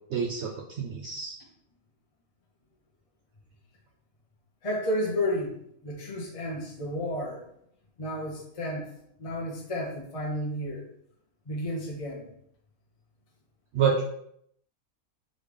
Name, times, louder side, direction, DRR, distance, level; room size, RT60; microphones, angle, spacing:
voice 1, 0.1-1.4 13.7-14.0, right 6 dB, 70° right, -1 dB, 0.6 m, -27 dB
voice 2, 4.6-7.4 8.0-8.9 9.2-10.9 11.5-12.3, left 1 dB, 35° left, -3 dB, 0.6 m, -32 dB
3.9 x 3.2 x 3.4 m, 0.71 s
omnidirectional pair, 1.6 m